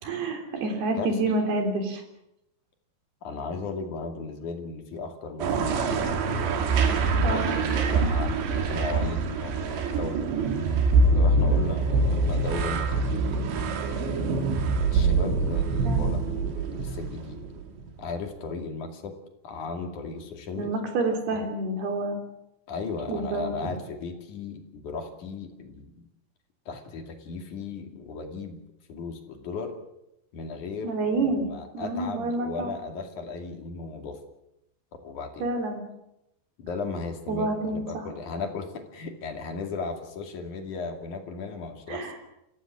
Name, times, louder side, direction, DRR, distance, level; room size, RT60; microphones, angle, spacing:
voice 1, 0.0-2.0 7.2-7.5 15.8-16.2 20.6-22.2 23.1-23.5 30.8-31.5 31.7-32.7 35.4-35.8 37.3-38.1 41.9-42.2, right 2 dB, 65° right, 5 dB, 5.5 m, -28 dB
voice 2, 3.2-6.1 7.2-8.4 8.7-10.2 11.1-13.4 14.9-16.2 16.7-17.4 18.0-19.2 19.4-20.7 21.3-21.5 22.7-26.0 26.7-28.6 28.9-29.7 30.3-34.2 34.9-35.5 36.6-42.1, left 4 dB, 50° left, 4 dB, 3.6 m, -36 dB
sound 1, 5.4-17.9, right 3 dB, 85° right, 4.5 m, -25 dB
29.0 x 15.5 x 7.5 m, 0.84 s
omnidirectional pair, 5.0 m